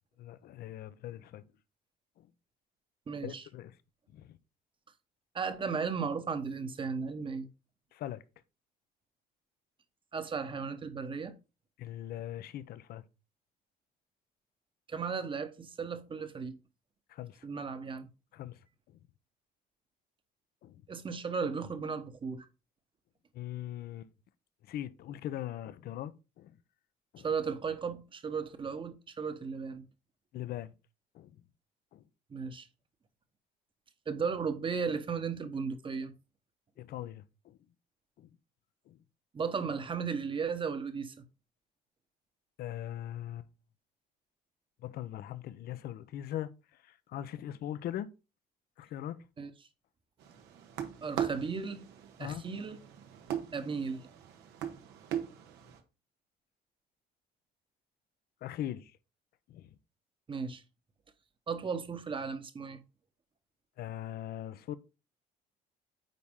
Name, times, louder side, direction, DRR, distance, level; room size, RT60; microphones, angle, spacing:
voice 1, 0.2-1.4 2.2-2.3 3.2-3.7 4.1-4.4 7.9-8.2 11.8-13.0 17.1-17.5 18.3-18.6 20.6-20.8 23.3-24.1 24.7-26.5 27.1-27.3 30.3-30.7 31.1-31.3 31.9-32.0 36.8-37.6 38.2-38.3 38.9-39.0 42.6-43.5 44.8-46.5 46.8-48.1 48.8-49.2 52.2-52.4 58.4-58.9 59.5-59.7 63.8-64.7, left 12 dB, 65° left, 0.7 m, -40 dB
voice 2, 3.1-3.4 5.3-7.5 10.1-11.3 14.9-16.6 17.4-18.1 20.9-22.5 27.2-29.9 32.3-32.7 34.1-36.1 39.3-41.2 49.4-49.5 51.0-51.8 52.2-52.8 53.5-54.0 60.3-60.6 61.5-62.8, right 5 dB, 30° right, 1.0 m, -35 dB
sound 1, 50.2-55.8, right 9 dB, 90° right, 1.3 m, -40 dB
9.3 x 4.2 x 3.6 m
cardioid pair, 110°, 17 cm